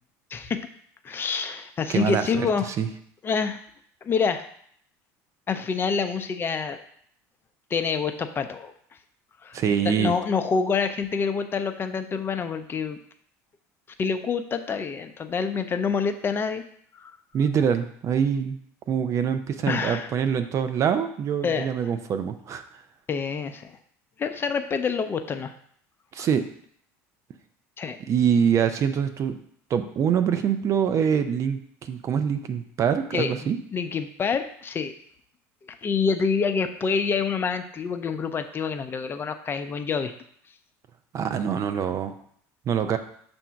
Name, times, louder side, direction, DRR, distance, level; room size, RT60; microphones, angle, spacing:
voice 1, 0.3-0.7 1.0-2.7 3.2-3.6 4.0-4.4 5.5-6.8 7.7-8.7 9.4-9.6 9.9-13.0 14.0-16.6 16.9-17.1 19.7-20.1 21.4-21.7 23.1-23.8 24.2-25.5 26.2-26.3 27.8-28.0 33.1-34.9 35.6-40.1, left 5 dB, 30° left, 8 dB, 0.6 m, -27 dB
voice 2, 1.9-2.9 9.5-10.1 17.3-18.6 18.9-22.6 26.1-26.4 28.1-29.4 29.7-33.6 41.1-42.1 42.7-43.0, right 7 dB, 45° right, 9 dB, 0.6 m, -24 dB
7.0 x 2.7 x 5.7 m, 0.63 s
supercardioid pair, 100°, 7 cm